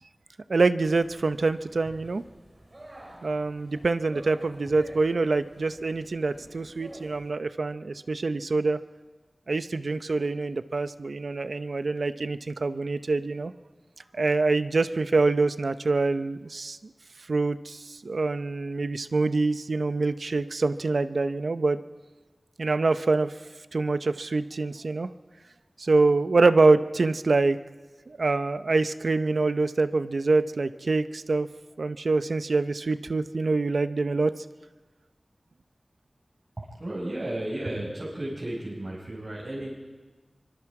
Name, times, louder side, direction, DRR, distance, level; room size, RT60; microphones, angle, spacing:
voice 1, 0.5-2.2 3.2-8.8 9.5-13.5 14.1-16.9 17.3-21.8 22.6-23.3 23.7-25.1 25.8-27.6 28.1-31.5 31.8-34.3, right 3 dB, 80° right, 11 dB, 0.7 m, -25 dB
sound 1, 0.8-7.3, right 1 dB, 35° right, 3.5 m, -49 dB
voice 2, 36.6-39.7, right 1 dB, 55° right, -6 dB, 5.8 m, -33 dB
24.5 x 24.5 x 4.8 m, 1.3 s
wide cardioid pair, 60°, 0 cm